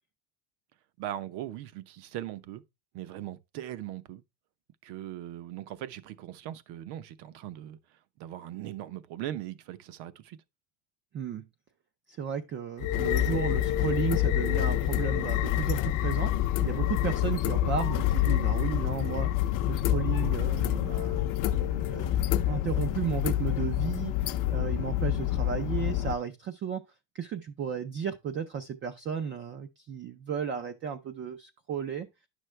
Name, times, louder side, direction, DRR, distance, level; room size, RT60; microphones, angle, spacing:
voice 1, 1.0-2.6 2.9-4.2 4.8-7.8 8.2-10.4 21.9-22.0, right 13 dB, 55° right, 0.9 m, -39 dB
voice 2, 11.1-11.4 12.1-16.3 16.6-19.3 19.7-22.2 22.5-26.8 27.1-32.1, right 7 dB, 25° right, 0.4 m, -34 dB
sound 1, 12.8-26.1, left 13 dB, 40° left, 0.6 m, -27 dB
10.0 x 6.4 x 3.2 m
cardioid pair, 160°, 48 cm